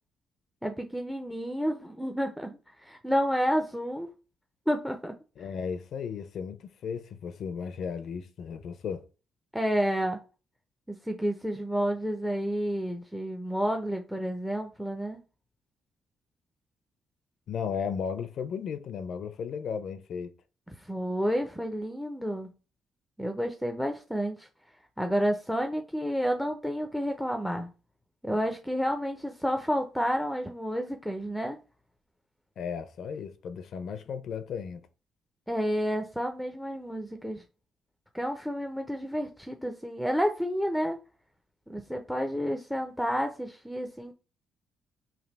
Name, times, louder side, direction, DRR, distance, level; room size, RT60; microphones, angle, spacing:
voice 1, 0.6-4.1 4.7-5.1 9.5-10.2 10.9-15.2 20.8-22.5 23.2-24.5 25.0-27.7 28.2-31.6 35.5-37.4 38.1-41.0 41.7-44.1, equal, ahead, 0.5 m, -30 dB
voice 2, 5.4-9.0 17.5-20.3 32.6-34.9, left 6 dB, 65° left, 0.4 m, -35 dB
3.3 x 2.6 x 3.9 m
cardioid pair, 90°, 0 cm